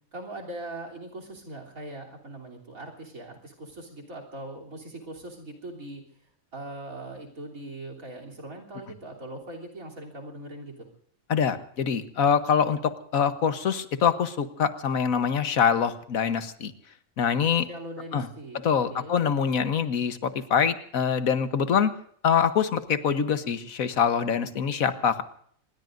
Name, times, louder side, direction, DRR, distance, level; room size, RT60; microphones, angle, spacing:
voice 1, 0.1-6.0 6.5-10.9 17.7-19.2, right 1 dB, 80° right, 4 dB, 3.8 m, -41 dB
voice 2, 11.3-16.7 17.2-17.7 18.1-18.3 18.6-21.9 22.2-25.2, left 7 dB, 85° left, 10 dB, 1.6 m, -24 dB
26.0 x 21.0 x 2.6 m, 0.62 s
omnidirectional pair, 1.4 m